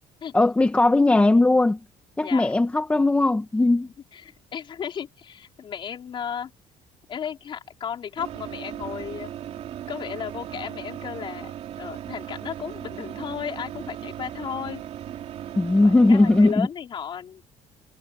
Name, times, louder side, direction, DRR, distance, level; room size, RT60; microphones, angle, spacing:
voice 1, 0.3-1.8 2.2-3.9 15.6-16.7, left 2 dB, 10° left, 1.0 m, -18 dB
voice 2, 2.2-2.5 3.8-6.5 7.1-9.3 9.9-14.8 15.8-17.4, left 8 dB, 40° left, 4.2 m, -34 dB
sound 1, 8.2-16.5, right 11 dB, 50° right, 3.5 m, -37 dB
cardioid pair, 150°, 13 cm